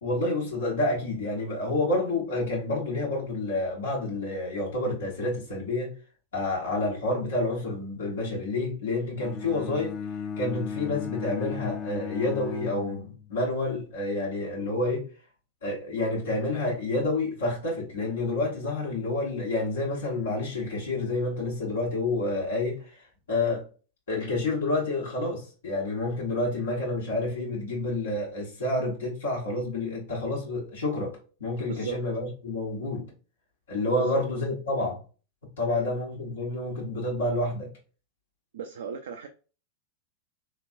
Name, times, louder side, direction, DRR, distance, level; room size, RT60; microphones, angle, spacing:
voice 1, 0.0-5.9 6.3-10.0 10.4-15.1 15.6-23.6 24.1-33.1 33.7-35.0 35.6-37.7, left 2 dB, 65° left, 1.2 m, -29 dB
Bowed string instrument, 9.2-13.5, left 7 dB, 25° left, 0.3 m, -36 dB
voice 2, 38.5-39.3, right 6 dB, 60° right, 0.4 m, -35 dB
3.5 x 2.9 x 2.6 m
figure-of-eight pair, 90°, 0 cm